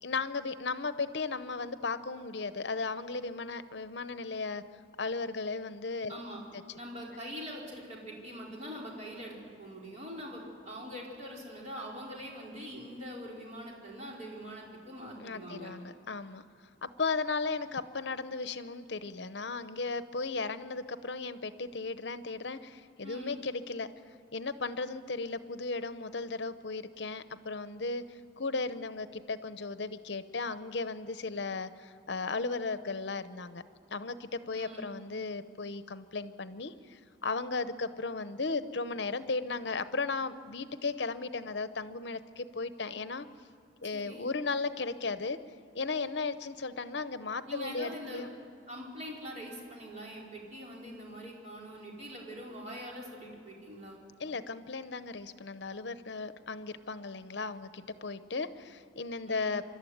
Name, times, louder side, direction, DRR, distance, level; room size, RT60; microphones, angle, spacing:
voice 1, 0.0-4.6 5.0-6.2 15.2-16.4 16.8-23.9 24.3-28.0 28.4-33.6 33.9-43.3 43.8-45.4 45.7-48.3 54.2-59.6, left 4 dB, 60° left, 13 dB, 0.8 m, -36 dB
voice 2, 6.1-6.4 6.8-15.7 23.0-23.4 34.5-34.9 43.9-44.3 47.5-48.2 48.7-54.0 59.3-59.6, equal, 35° right, -3 dB, 4.7 m, -43 dB
26.0 x 12.5 x 9.4 m, 2.4 s
head